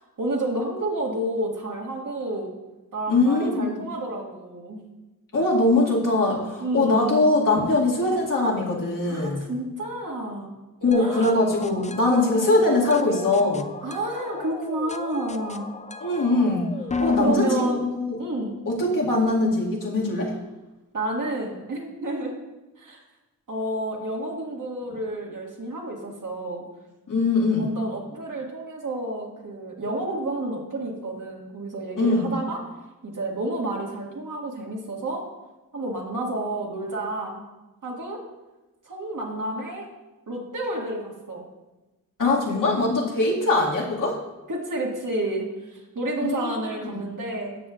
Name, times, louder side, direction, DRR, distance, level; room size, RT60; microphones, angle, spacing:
voice 1, 0.2-2.5 2.9-4.9 6.6-7.2 9.1-10.5 10.9-11.3 13.8-15.7 17.0-17.8 18.2-18.6 20.9-22.3 22.8-23.0 23.5-26.7 27.6-32.6 33.0-35.2 35.7-37.4 37.8-38.2 38.9-39.9 40.3-41.4 42.3-42.6 44.5-47.6, right 1 dB, 65° right, -2 dB, 2.0 m, -30 dB
voice 2, 3.1-3.8 5.3-9.5 10.8-13.7 16.0-16.7 17.0-18.2 18.7-20.3 27.1-27.7 32.0-32.3 42.2-44.2 46.2-46.5 46.8-47.1, left 2 dB, 65° left, -4 dB, 2.1 m, -22 dB
sound 1, 10.9-18.7, left 3 dB, 20° left, 0.4 m, -33 dB
13.0 x 7.5 x 2.5 m, 1.1 s
wide cardioid pair, 80°, 34 cm